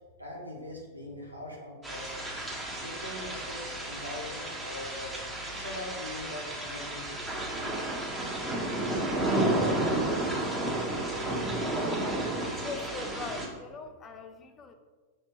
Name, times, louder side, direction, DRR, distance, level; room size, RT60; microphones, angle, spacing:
voice 1, 0.2-2.4 2.8-5.1 5.4-7.6, left 1 dB, 85° right, -1 dB, 1.4 m, -42 dB
sound 1, 1.8-13.5, right 1 dB, 10° right, 1.7 m, -32 dB
voice 2, 12.6-14.8, left 4 dB, 25° left, 6 dB, 0.8 m, -41 dB
6.1 x 4.4 x 4.8 m, 1.4 s
figure-of-eight pair, 95°, 0 cm